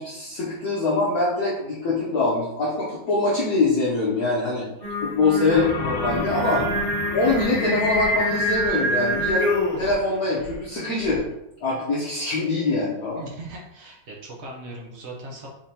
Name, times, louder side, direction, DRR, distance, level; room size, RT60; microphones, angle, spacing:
voice 1, 0.0-4.7 5.0-6.6 7.1-11.2 11.6-13.2, left 3 dB, 55° left, -7 dB, 1.2 m, -23 dB
Singing, 4.8-9.9, left 1 dB, 35° left, 1.2 m, -26 dB
sound 1, 5.5-11.2, left 3 dB, 75° left, 1.3 m, -35 dB
voice 2, 6.5-6.9 13.1-15.5, right 1 dB, 75° right, -2 dB, 0.6 m, -39 dB
5.1 x 3.5 x 2.8 m, 0.87 s
omnidirectional pair, 2.3 m